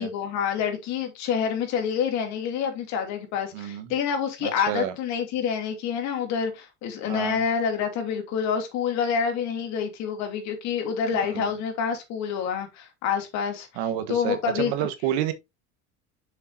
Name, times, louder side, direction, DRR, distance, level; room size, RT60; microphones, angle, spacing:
voice 1, 0.0-13.7 14.1-14.9, left 7 dB, 60° left, 2.8 m, -27 dB
voice 2, 3.5-3.9 4.4-4.9 7.1-7.4 11.1-11.5 13.8-15.3, right 11 dB, 85° right, 1.3 m, -29 dB
6.9 x 6.7 x 2.8 m
supercardioid pair, 115°, 31 cm